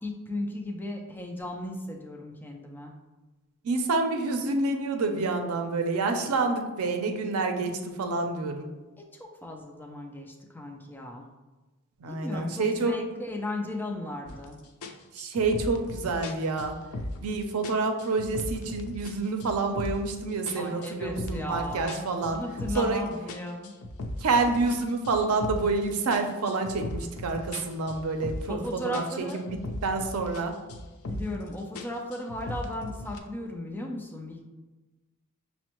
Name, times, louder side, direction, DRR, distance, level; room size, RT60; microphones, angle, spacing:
voice 1, 0.0-2.9 9.0-11.3 12.1-14.6 20.6-21.9 22.2-23.7 28.5-29.4 31.1-34.4, left 1 dB, 10° left, 1 dB, 0.3 m, -36 dB
voice 2, 3.6-8.7 12.0-12.9 15.1-16.7 17.2-22.4 22.8-23.0 24.2-30.5, right 3 dB, 80° right, 4 dB, 0.5 m, -28 dB
sound 1, 14.3-14.5 14.8-17.3 17.6-19.1 19.4-20.1 20.5-23.0 23.3-25.8 26.1-28.7 28.9-30.4 30.7-31.4 31.8-33.2, left 1 dB, 90° left, 0.4 m, -37 dB
6.0 x 2.1 x 2.9 m, 1.2 s
head